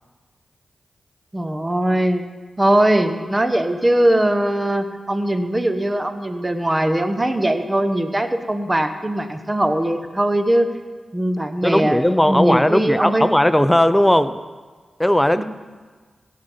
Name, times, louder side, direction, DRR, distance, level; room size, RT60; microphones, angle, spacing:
voice 1, 1.3-2.2 2.6-10.7 11.1-13.3 15.4-15.5, right 1 dB, 25° right, 8 dB, 1.1 m, -20 dB
voice 2, 11.6-14.4 15.0-15.4, left 1 dB, 10° left, 13 dB, 0.5 m, -17 dB
17.0 x 6.5 x 5.6 m, 1.4 s
supercardioid pair, 40°, 0 cm